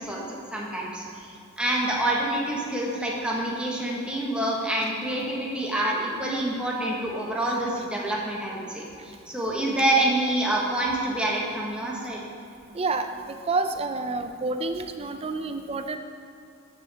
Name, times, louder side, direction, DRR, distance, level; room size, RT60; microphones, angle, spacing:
voice 1, 0.0-12.2, right 1 dB, 5° right, -4 dB, 1.4 m, -27 dB
voice 2, 12.7-16.0, right 3 dB, 30° right, 7 dB, 0.4 m, -29 dB
13.0 x 7.0 x 3.5 m, 2.5 s
head